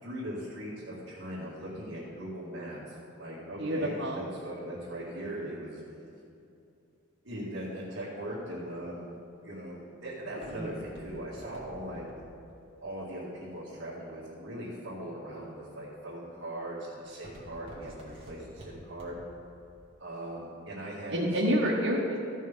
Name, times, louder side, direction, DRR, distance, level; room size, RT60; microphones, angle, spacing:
voice 1, 0.0-5.8 7.2-9.1 9.4-12.1 12.8-19.2 20.0-21.2, right 1 dB, 65° right, -9 dB, 2.2 m, -40 dB
voice 2, 3.6-4.2 10.5-10.7 21.1-22.2, equal, 85° right, -5 dB, 1.4 m, -28 dB
Walk footsteps, 9.1-14.3 14.9-15.3 15.8-16.2 16.5-19.4 19.7-19.8, right 1 dB, 30° right, 2.1 m, -50 dB
14.5 x 6.2 x 5.5 m, 2.7 s
head